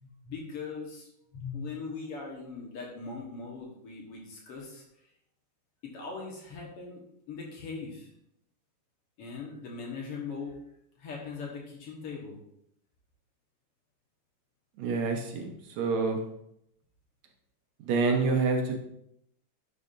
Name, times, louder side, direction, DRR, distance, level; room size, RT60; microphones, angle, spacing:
voice 1, 0.0-4.8 5.8-8.1 9.2-10.6 11.0-12.4, left 4 dB, 55° left, -2 dB, 2.1 m, -40 dB
voice 2, 14.8-16.2 17.8-18.7, right 4 dB, 75° right, 3 dB, 2.1 m, -27 dB
10.5 x 5.7 x 2.6 m, 0.76 s
omnidirectional pair, 3.4 m